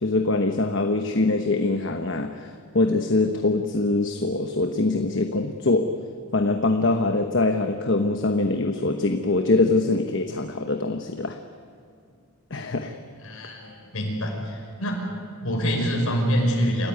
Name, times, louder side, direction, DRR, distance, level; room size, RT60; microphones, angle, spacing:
voice 1, 0.0-5.9 6.3-11.4 12.5-13.0, left 2 dB, 55° left, 5 dB, 1.1 m, -23 dB
voice 2, 13.2-15.0 15.4-16.9, equal, 85° left, 1 dB, 5.6 m, -25 dB
27.5 x 15.0 x 9.6 m, 2.2 s
head